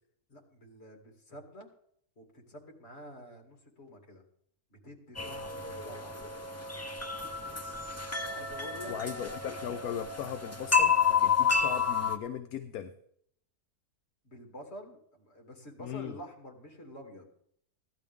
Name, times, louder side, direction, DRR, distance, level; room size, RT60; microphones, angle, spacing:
voice 1, 0.3-1.7 2.2-4.2 4.7-6.2 8.3-8.9 14.2-17.3, left 1 dB, 40° left, 2 dB, 2.7 m, -48 dB
sound 1, 5.2-12.2, left 6 dB, 20° left, 0.4 m, -30 dB
voice 2, 8.9-12.9 15.8-16.2, left 9 dB, 70° left, 8 dB, 1.1 m, -38 dB
16.0 x 12.0 x 3.6 m, 0.66 s
omnidirectional pair, 1.7 m